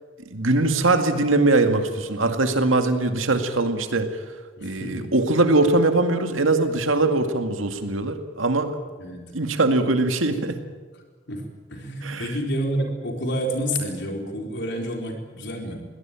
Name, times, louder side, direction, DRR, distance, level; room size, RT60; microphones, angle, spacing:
voice 1, 0.3-4.2 4.6-8.8 9.3-10.6 12.0-12.3, right 2 dB, 80° right, 6 dB, 2.1 m, -21 dB
voice 2, 4.6-5.1 9.0-9.2 11.3-11.4 11.7-15.9, equal, 60° left, 2 dB, 4.3 m, -29 dB
22.5 x 18.0 x 9.0 m, 1.4 s
head